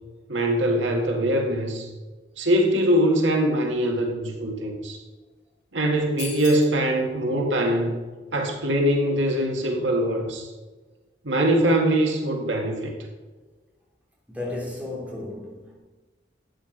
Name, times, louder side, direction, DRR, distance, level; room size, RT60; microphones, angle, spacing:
voice 1, 0.3-1.9 2.4-5.0 5.7-7.9 8.3-10.5 11.2-12.9, right 1 dB, 90° right, 1 dB, 1.9 m, -22 dB
sound 1, 6.2-6.8, left 9 dB, 65° left, 1.3 m, -37 dB
voice 2, 14.3-15.8, left 2 dB, 10° right, -5 dB, 3.3 m, -34 dB
12.5 x 8.9 x 5.1 m, 1.3 s
head